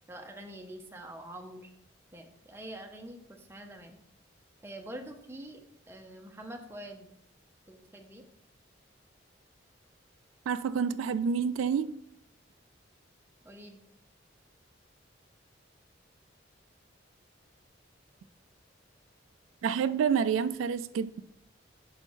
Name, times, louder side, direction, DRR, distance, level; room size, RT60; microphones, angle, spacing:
voice 1, 0.1-1.7 2.1-4.0 4.6-7.1 7.7-8.2 13.4-13.8, right 1 dB, 10° right, 0.6 m, -45 dB
voice 2, 10.5-12.0 19.6-21.2, right 6 dB, 90° right, 0.3 m, -28 dB
5.5 x 4.4 x 4.3 m
head